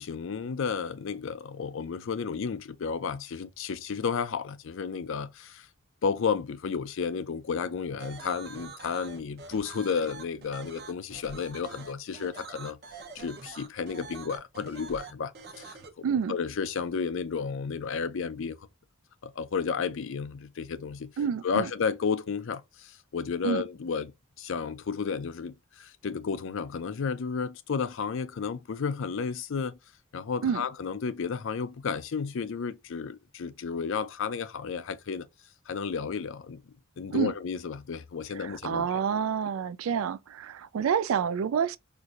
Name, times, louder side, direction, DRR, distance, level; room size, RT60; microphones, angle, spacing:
voice 1, 0.0-5.7 6.0-12.8 13.1-18.6 19.2-21.1 21.4-24.1 24.4-29.8 30.1-35.3 35.7-36.6 37.0-39.0, left 5 dB, 65° left, 0.4 m, -32 dB
sound 1, 8.0-15.9, right 4 dB, 50° right, 0.8 m, -45 dB
voice 2, 16.0-16.4 21.2-21.7 23.4-23.6 30.4-30.6 37.1-37.3 38.3-41.8, right 7 dB, 75° right, 0.3 m, -28 dB
4.4 x 2.6 x 2.4 m
head